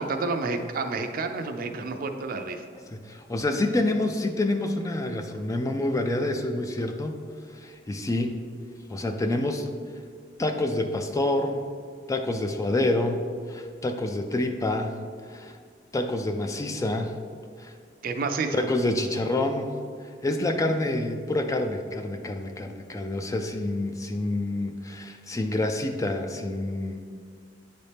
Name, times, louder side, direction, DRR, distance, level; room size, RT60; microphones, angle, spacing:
voice 1, 0.0-2.6 18.0-18.6, right 3 dB, 50° right, 6 dB, 0.5 m, -29 dB
voice 2, 2.9-7.1 7.5-8.4 8.9-9.7 10.4-11.6 12.1-15.0 15.3-15.6 15.9-17.2 17.6-17.7 18.5-19.7 20.2-27.0, left 2 dB, 20° left, 6 dB, 0.3 m, -27 dB
9.0 x 4.2 x 3.4 m, 2.1 s
head